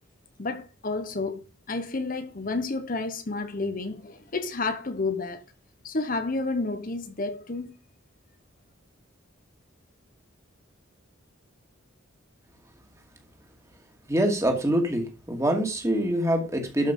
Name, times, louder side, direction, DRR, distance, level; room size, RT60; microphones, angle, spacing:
voice 1, 0.4-1.4 1.7-5.4 5.8-7.7, left 3 dB, 40° left, 0.9 m, -30 dB
voice 2, 14.1-16.9, right 1 dB, 15° right, 2.2 m, -25 dB
12.0 x 5.8 x 5.3 m
head